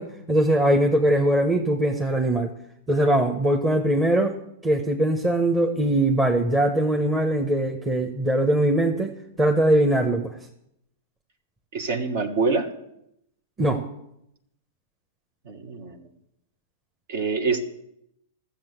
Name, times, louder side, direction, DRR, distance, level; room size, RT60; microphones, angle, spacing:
voice 1, 0.0-2.5 2.9-4.3 4.6-9.1 9.4-10.4 13.6-13.8, right 1 dB, 15° right, 2 dB, 1.1 m, -21 dB
voice 2, 11.7-12.7 15.5-16.1 17.1-17.6, right 4 dB, 55° right, 7 dB, 1.4 m, -25 dB
13.5 x 7.3 x 8.0 m, 0.79 s
figure-of-eight pair, 100°, 0 cm